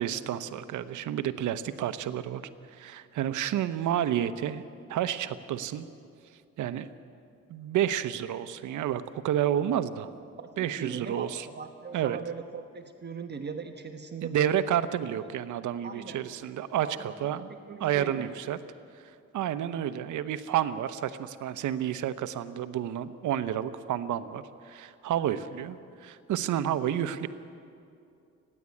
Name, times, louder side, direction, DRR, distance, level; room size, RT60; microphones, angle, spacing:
voice 1, 0.0-2.4 2.7-4.6 4.9-5.9 6.6-6.9 7.5-10.1 10.6-11.5 11.9-12.2 14.2-17.5 17.8-18.6 19.3-27.3, right 10 dB, 75° right, 12 dB, 1.0 m, -30 dB
voice 2, 10.4-14.6 15.2-15.3 15.8-16.2 16.8-17.1 17.7-18.3, right 5 dB, 35° right, 5 dB, 1.3 m, -39 dB
29.0 x 11.0 x 8.6 m, 2.5 s
cardioid pair, 90°, 30 cm